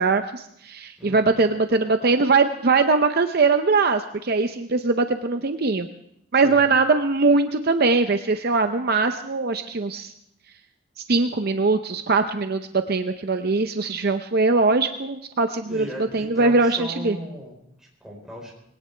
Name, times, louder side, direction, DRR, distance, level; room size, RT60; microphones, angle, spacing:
voice 1, 0.0-5.9 6.3-10.1 11.1-15.9 16.1-17.2, right 3 dB, 50° right, 7 dB, 0.6 m, -21 dB
voice 2, 1.0-1.5 6.4-6.6 15.7-18.5, equal, ahead, -3 dB, 4.3 m, -37 dB
20.5 x 18.0 x 3.4 m, 0.72 s
head